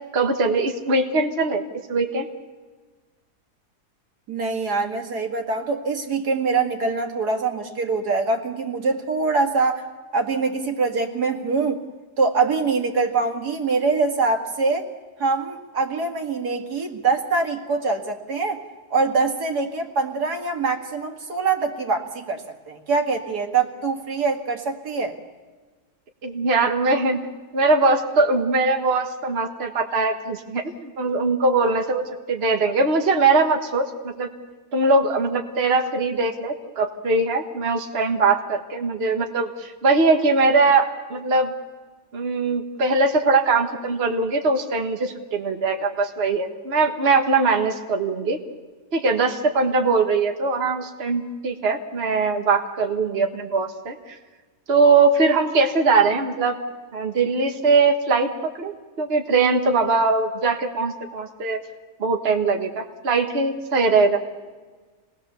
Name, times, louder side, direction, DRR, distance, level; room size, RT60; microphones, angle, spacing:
voice 1, 0.1-1.6 1.9-2.3 26.2-27.2 27.5-34.3 34.7-41.5 42.1-48.4 48.9-54.2 54.7-56.6 56.9-58.7 59.0-61.6 62.0-64.2, right 3 dB, 40° right, 4 dB, 1.6 m, -21 dB
voice 2, 4.3-9.8 10.1-11.8 12.2-14.9 15.2-18.6 18.9-25.2, right 4 dB, 80° right, 3 dB, 2.6 m, -24 dB
27.5 x 19.5 x 6.9 m, 1.4 s
omnidirectional pair, 1.7 m